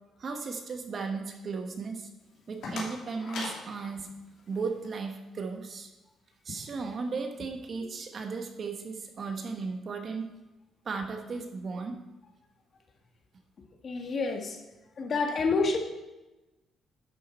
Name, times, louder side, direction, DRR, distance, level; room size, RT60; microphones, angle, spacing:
voice 1, 0.2-2.1 2.5-4.1 4.5-5.9 6.4-10.3 10.8-12.0, right 4 dB, 50° right, 4 dB, 1.4 m, -35 dB
sound 1, 2.2-5.0, left 2 dB, 70° left, 2.6 m, -41 dB
voice 2, 13.8-14.6 15.0-15.8, left 4 dB, 50° left, 4 dB, 1.6 m, -28 dB
11.0 x 6.7 x 4.5 m, 1.1 s
cardioid pair, 90°, 0 cm